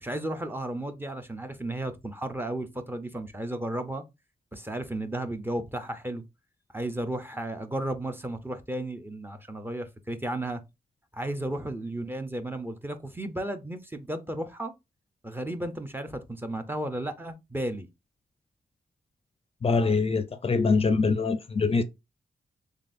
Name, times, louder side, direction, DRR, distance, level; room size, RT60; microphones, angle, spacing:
voice 1, 0.0-4.0 4.5-6.2 6.7-10.6 11.1-14.7 15.2-17.9, right 1 dB, 15° right, 0.6 m, -34 dB
voice 2, 19.6-21.8, left 4 dB, 35° left, 0.4 m, -24 dB
3.9 x 3.3 x 2.5 m
wide cardioid pair, 110°, 16 cm